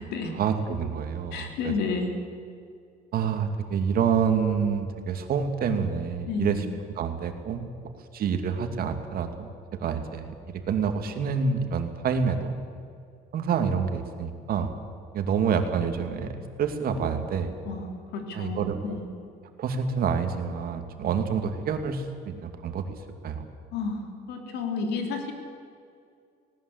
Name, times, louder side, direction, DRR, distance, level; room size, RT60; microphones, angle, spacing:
voice 1, 0.3-1.7 3.1-6.7 7.0-7.7 8.1-9.5 9.8-12.6 13.3-14.7 15.1-17.5 18.3-18.8 19.6-22.8 23.2-23.5, right 6 dB, 60° right, 6 dB, 2.5 m, -27 dB
voice 2, 1.3-2.1 6.3-6.6 17.6-17.8 18.1-19.0 23.7-24.0 24.3-25.3, left 4 dB, 80° left, 4 dB, 3.4 m, -30 dB
19.0 x 18.5 x 8.0 m, 2.3 s
cardioid pair, 110°, 17 cm